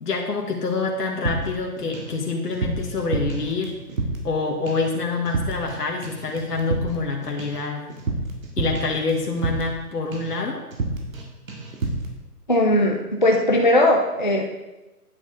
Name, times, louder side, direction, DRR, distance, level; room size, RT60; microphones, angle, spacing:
voice 1, 0.0-3.7 4.2-7.9 8.6-10.6, left 3 dB, 75° left, 1 dB, 1.5 m, -26 dB
sound 1, 1.3-2.2 2.4-4.4 4.7-5.0 5.3-5.8 6.0-9.8 10.1-10.4 10.7-11.2 11.5-12.1, right 2 dB, 60° right, 2.0 m, -29 dB
voice 2, 12.5-14.4, left 1 dB, 30° left, 0 dB, 0.4 m, -19 dB
9.7 x 6.4 x 3.8 m, 1.1 s
hypercardioid pair, 165°, 47 cm